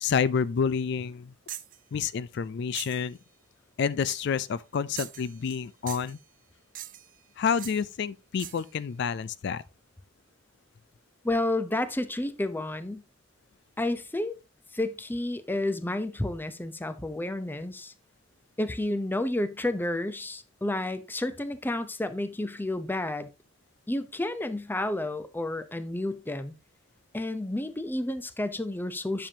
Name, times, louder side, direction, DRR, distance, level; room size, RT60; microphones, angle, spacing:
voice 1, 0.0-1.3 1.9-3.2 3.8-6.2 7.4-9.6, left 6 dB, 65° left, 0.4 m, -29 dB
sound 1, 1.5-1.8 2.7-3.1 4.1-4.3 5.0-5.6 5.9-6.2 6.7-7.2 7.6-7.8 8.4-8.7, right 12 dB, 45° right, 0.6 m, -41 dB
voice 2, 11.2-13.0 13.8-14.3 14.7-17.9 18.6-23.3 23.9-26.5 27.1-29.3, left 1 dB, 10° left, 0.7 m, -31 dB
10.5 x 6.9 x 2.8 m
head